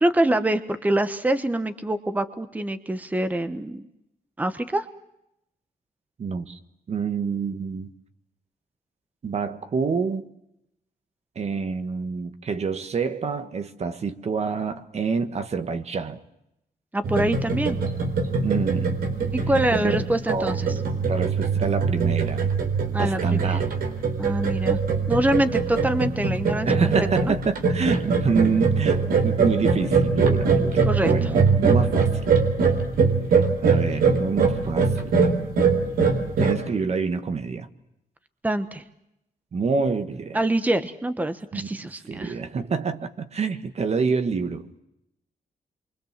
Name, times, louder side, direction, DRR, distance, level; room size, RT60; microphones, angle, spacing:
voice 1, 0.0-3.9 4.4-4.9 16.9-17.8 19.3-20.7 22.9-23.6 24.2-24.8 25.1-26.7 27.0-27.3 30.6-31.3 38.4-38.8 40.3-42.3, right 1 dB, 10° right, 1.2 m, -25 dB
voice 2, 6.2-6.6 6.9-7.9 9.2-10.2 11.3-16.2 18.4-19.0 19.7-19.9 20.3-22.6 23.0-23.6 26.6-32.1 33.3-35.5 36.4-37.7 39.5-40.4 41.5-44.7, right 5 dB, 45° right, 1.5 m, -27 dB
sound 1, 17.0-36.5, right 4 dB, 90° right, 4.1 m, -22 dB
28.0 x 24.5 x 7.5 m
wide cardioid pair, 125°, 15 cm